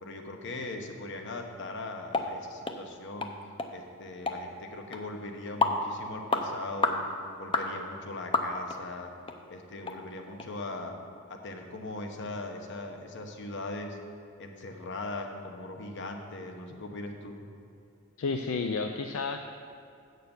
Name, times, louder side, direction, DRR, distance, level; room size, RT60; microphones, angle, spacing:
voice 1, 0.0-3.3 3.7-7.0 7.4-9.1 9.5-10.9 11.3-14.0 14.4-17.4, left 2 dB, 60° left, 4 dB, 1.0 m, -40 dB
sound 1, 2.1-2.3 2.6-2.8 3.2-3.3 3.6-3.7 4.3-4.4 4.9-5.0 5.6-5.8 6.3-6.5 6.8-7.0 7.5-7.7 8.3-8.8 9.3-9.4 9.8-10.0 10.4-10.5, left 3 dB, 25° left, 0.6 m, -28 dB
voice 2, 18.2-19.4, left 4 dB, 75° left, 6 dB, 0.4 m, -31 dB
7.8 x 6.7 x 7.0 m, 2.5 s
head